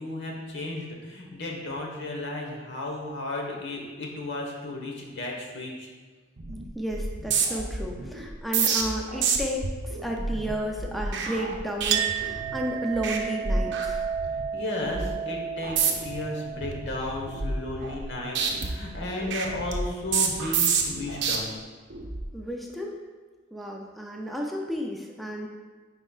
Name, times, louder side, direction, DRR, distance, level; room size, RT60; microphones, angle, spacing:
voice 1, 0.0-5.9 14.5-21.5, left 2 dB, 65° left, 0 dB, 1.2 m, -34 dB
sound 1, 6.4-6.6 6.9-12.6 12.9-13.2 13.5-14.4 14.8-15.1 15.6-16.2 16.6-18.1 18.4-21.4 21.9-22.2, right 5 dB, 60° right, 0.7 m, -29 dB
voice 2, 6.7-14.1 22.3-23.0 23.5-25.5, equal, ahead, -1 dB, 0.4 m, -32 dB
Chink clink, 11.9-19.0, right 8 dB, 85° right, 0.3 m, -33 dB
9.7 x 4.4 x 2.4 m, 1.4 s
head